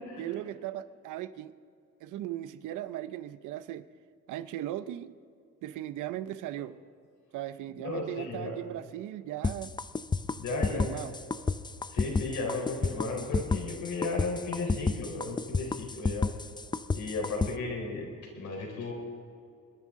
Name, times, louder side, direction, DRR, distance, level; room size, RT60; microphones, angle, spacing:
voice 1, 0.2-1.5 2.0-3.9 4.3-5.1 5.6-6.8 7.3-9.7 10.5-11.1, right 13 dB, 85° right, 0.7 m, -38 dB
voice 2, 7.8-8.6 10.4-11.1 11.9-16.3 16.9-18.9, left 3 dB, 75° left, 4.0 m, -35 dB
sound 1, 9.4-17.5, left 4 dB, 15° left, 0.5 m, -30 dB
25.5 x 10.5 x 3.7 m
cardioid pair, 90°, 30 cm